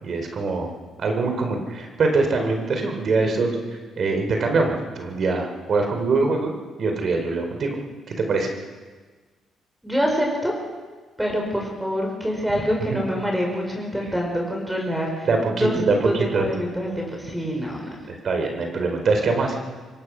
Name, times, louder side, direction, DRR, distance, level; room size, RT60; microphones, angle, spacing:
voice 1, 0.0-0.7 1.0-6.5 6.8-7.8 8.1-8.5 12.9-13.0 15.2-16.5 18.1-19.6, right 3 dB, 55° right, 3 dB, 4.0 m, -23 dB
voice 2, 9.8-10.5 11.2-15.8 16.0-17.8, equal, 5° right, 0 dB, 5.3 m, -26 dB
24.0 x 17.5 x 6.3 m, 1.4 s
cardioid pair, 90°, 0 cm